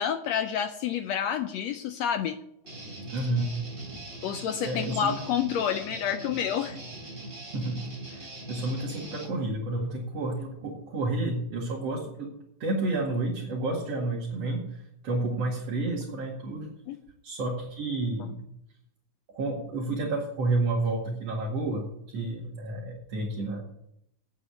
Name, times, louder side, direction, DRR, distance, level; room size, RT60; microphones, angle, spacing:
voice 1, 0.0-2.4 4.2-6.8 16.9-17.0, left 8 dB, 75° left, 9 dB, 1.6 m, -29 dB
Guitar, 2.6-9.4, right 2 dB, 15° right, 3.4 m, -42 dB
voice 2, 3.1-3.5 3.9-4.3 4.6-5.1 7.5-12.3 12.6-16.7 17.2-18.4 19.3-23.6, right 2 dB, 55° right, -3 dB, 3.1 m, -30 dB
9.0 x 8.3 x 8.2 m, 0.76 s
omnidirectional pair, 3.5 m